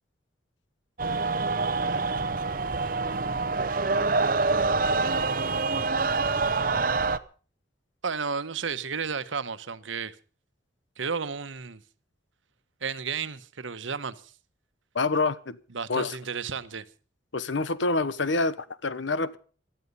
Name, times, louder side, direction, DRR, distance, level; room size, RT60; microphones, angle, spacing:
sound 1, 1.0-7.2, right 3 dB, 45° right, 0.7 m, -26 dB
voice 1, 1.0-2.3 8.0-10.2 11.0-11.8 12.8-14.2 15.7-16.8, right 5 dB, 85° right, 1.1 m, -33 dB
voice 2, 14.9-15.6 15.9-16.2 17.3-19.4, left 3 dB, 75° left, 1.0 m, -27 dB
18.0 x 12.5 x 5.4 m
head